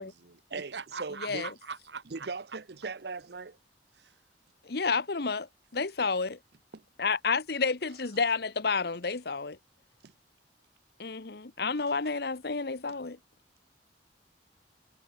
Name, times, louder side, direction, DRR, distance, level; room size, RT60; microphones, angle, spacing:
voice 1, 0.0-2.3 3.9-4.1, right 5 dB, 80° right, 1.6 m, -43 dB
voice 2, 1.0-1.4 2.1-3.6 6.7-6.8 10.0-10.1, right 4 dB, 65° right, 0.7 m, -38 dB
voice 3, 4.7-5.5 5.7-6.4 7.0-9.6 11.0-13.2, left 4 dB, 60° left, 1.0 m, -30 dB
head